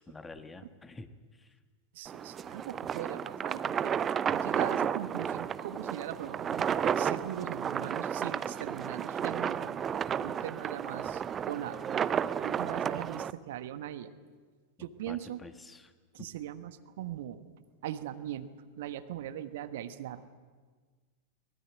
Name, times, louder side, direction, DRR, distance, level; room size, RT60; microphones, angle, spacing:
voice 1, 0.0-1.6 15.1-15.9 16.2-16.3, left 3 dB, 10° left, 9 dB, 1.5 m, -48 dB
voice 2, 1.9-3.9 4.3-12.1 12.4-14.1 14.8-15.4 16.1-17.4 17.8-18.5 18.8-20.3, right 11 dB, 55° right, 11 dB, 1.3 m, -40 dB
sound 1, 2.1-13.3, right 8 dB, 25° right, 0.7 m, -32 dB
23.5 x 20.5 x 9.0 m, 1.5 s
figure-of-eight pair, 90°, 0 cm